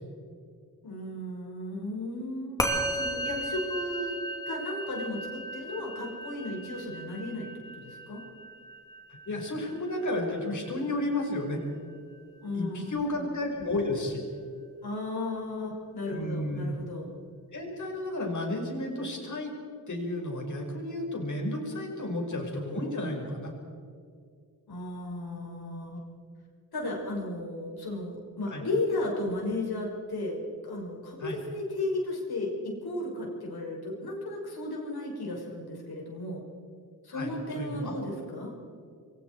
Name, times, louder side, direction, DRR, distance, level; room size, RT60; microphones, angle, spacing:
voice 1, 0.8-4.2 4.5-7.5 7.7-8.2 12.4-13.3 14.8-17.1 24.7-26.0 26.7-36.4 37.0-38.5, left 2 dB, 85° left, -1 dB, 6.3 m, -34 dB
Musical instrument, 2.6-12.1, right 1 dB, 10° left, 3.0 m, -36 dB
voice 2, 9.1-11.6 12.5-14.2 16.1-16.7 17.5-19.5 19.9-23.5 28.5-28.7 31.2-31.4 37.1-37.9, left 1 dB, 50° left, 1 dB, 5.6 m, -32 dB
28.5 x 23.0 x 4.8 m, 2.3 s
wide cardioid pair, 130°, 37 cm